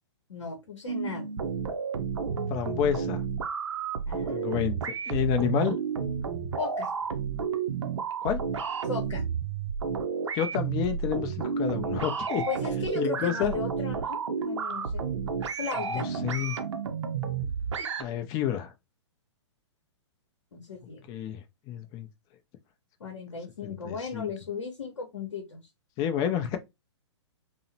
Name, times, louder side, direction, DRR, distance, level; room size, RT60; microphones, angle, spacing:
voice 1, 0.3-1.3 4.1-4.5 6.6-6.9 8.8-9.2 12.5-15.0 15.6-16.1 20.5-21.0 23.0-25.6, left 5 dB, 80° left, 0.8 m, -36 dB
sound 1, 0.9-18.0, right 6 dB, 75° right, 0.5 m, -31 dB
voice 2, 2.5-3.2 4.3-5.8 8.2-8.4 10.3-12.4 12.9-13.5 15.9-16.6 18.0-18.7 21.1-22.1 23.6-24.3 26.0-26.6, left 10 dB, 25° left, 0.4 m, -29 dB
2.7 x 2.0 x 2.7 m
hypercardioid pair, 120°, 15 cm